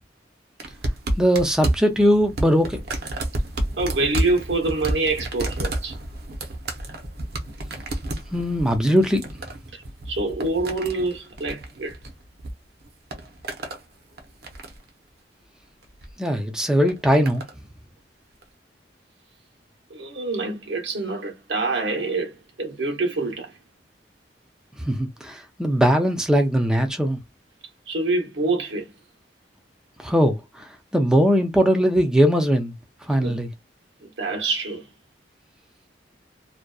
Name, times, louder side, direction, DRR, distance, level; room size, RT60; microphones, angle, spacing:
sound 1, 0.6-12.5 12.8-13.8 14.2-14.9 15.8-16.1 16.9-17.5 18.4-18.5, right 1 dB, 60° right, 0.7 m, -30 dB
voice 1, 1.2-2.8 8.3-9.2 16.2-17.4 24.8-27.2 30.0-32.7 33.1-33.5, equal, 5° right, 0.4 m, -20 dB
voice 2, 3.8-6.0 9.7-9.8 10.1-12.0 19.9-23.5 27.9-28.9 33.2-33.4 34.0-34.9, right 3 dB, 90° right, 0.9 m, -26 dB
2.6 x 2.2 x 2.3 m
head